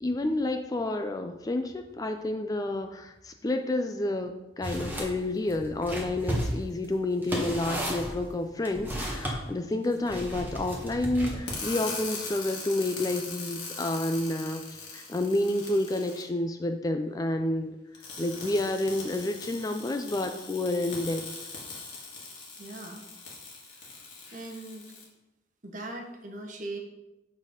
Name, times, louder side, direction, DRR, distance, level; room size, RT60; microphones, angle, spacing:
voice 1, 0.0-17.7 18.2-21.2, left 2 dB, 20° left, 6 dB, 0.4 m, -29 dB
sound 1, 4.6-5.1 5.5-9.4 10.1-11.6, equal, 10° right, 1.1 m, -33 dB
voice 2, 9.6-10.0 22.6-23.1 23.8-24.0 24.3-24.9 25.6-26.8, right 2 dB, 45° right, 3 dB, 1.0 m, -40 dB
sound 2, 11.5-16.2 17.9-25.0, left 3 dB, 70° left, 1.9 m, -41 dB
7.5 x 4.1 x 5.0 m, 0.97 s
head